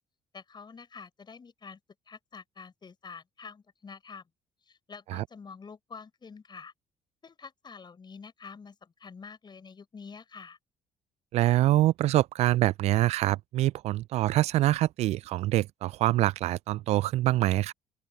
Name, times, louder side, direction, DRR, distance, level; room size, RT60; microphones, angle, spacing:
voice 1, 0.3-1.8 2.1-4.2 4.7-6.7 7.2-10.6, left 5 dB, 35° left, 7.6 m, -47 dB
voice 2, 11.3-17.7, right 15 dB, 60° right, 0.5 m, -25 dB
open air
hypercardioid pair, 50°, 12 cm